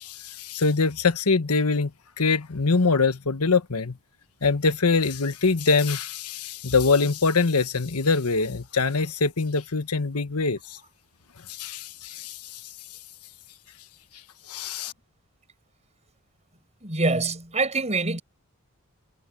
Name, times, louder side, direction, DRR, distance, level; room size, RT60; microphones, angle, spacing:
voice 1, 0.0-1.9 2.2-4.0 4.4-10.8 11.5-12.7 14.5-14.9, left 4 dB, 90° left, 1.3 m, -24 dB
voice 2, 16.8-18.2, right 3 dB, 30° right, 7.1 m, -25 dB
head